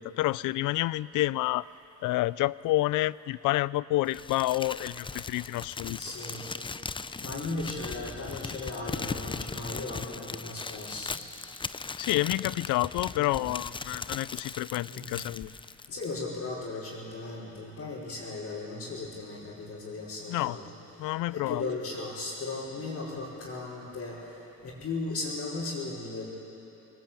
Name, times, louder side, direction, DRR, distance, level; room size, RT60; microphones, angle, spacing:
voice 1, 0.0-1.7 2.0-6.0 12.0-15.5 20.3-20.6 21.0-21.6, left 17 dB, 90° left, 20 dB, 0.5 m, -29 dB
Crumpling crinkling, 4.1-16.2, left 4 dB, 15° left, 0.5 m, -38 dB
voice 2, 6.0-6.5 7.2-11.2 13.1-13.5 14.8-15.2 15.9-20.7 21.3-24.2 24.6-26.3, left 3 dB, 55° left, -9 dB, 5.4 m, -36 dB
21.0 x 20.5 x 8.8 m, 3.0 s
cardioid pair, 90°, 30 cm